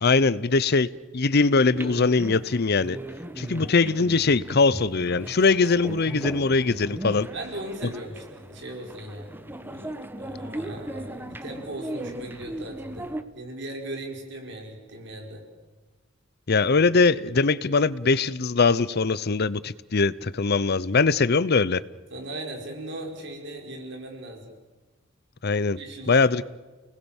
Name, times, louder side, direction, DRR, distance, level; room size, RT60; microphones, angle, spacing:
voice 1, 0.0-0.9 1.1-3.0 3.4-7.3 16.5-21.8 25.4-25.8 26.1-26.4, left 4 dB, 55° left, 18 dB, 0.7 m, -21 dB
sound 1, 1.7-13.2, right 1 dB, 10° right, 1.1 m, -37 dB
voice 2, 7.3-15.4 22.1-24.5 25.7-26.4, right 1 dB, 65° right, 2 dB, 4.9 m, -38 dB
30.0 x 19.5 x 7.3 m, 1.3 s
head